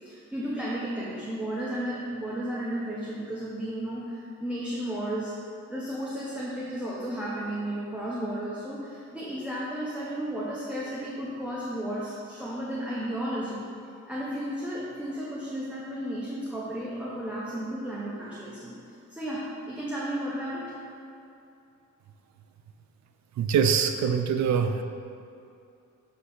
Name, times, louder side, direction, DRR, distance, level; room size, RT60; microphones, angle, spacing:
voice 1, 0.0-5.3 5.7-13.7 14.1-20.8, right 1 dB, 5° right, -7 dB, 1.2 m, -33 dB
voice 2, 23.4-24.8, right 7 dB, 65° right, 7 dB, 0.6 m, -24 dB
8.4 x 3.3 x 5.6 m, 2.6 s
cardioid pair, 90°, 30 cm